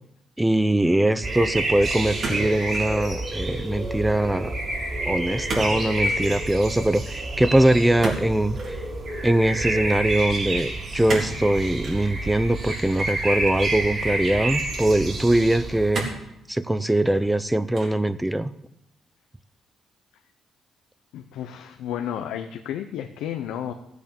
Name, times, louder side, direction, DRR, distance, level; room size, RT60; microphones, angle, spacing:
voice 1, 0.4-4.5 5.1-8.8 9.2-16.1 16.5-18.5, right 1 dB, 10° right, 13 dB, 0.6 m, -22 dB
sound 1, 1.2-15.9, right 2 dB, 40° right, 5.4 m, -29 dB
sound 2, 2.2-3.0 3.3-3.7 5.5-5.7 6.0-6.2 8.0-8.8 11.1-11.4 11.8-12.0 13.0-13.7 14.4-14.5 15.9-16.3 16.9-17.4 17.7-18.1, right 3 dB, 60° right, 3.9 m, -32 dB
voice 2, 21.1-23.7, left 10 dB, 90° left, 6 dB, 0.8 m, -32 dB
14.5 x 8.2 x 7.1 m, 0.81 s
cardioid pair, 90°, 0 cm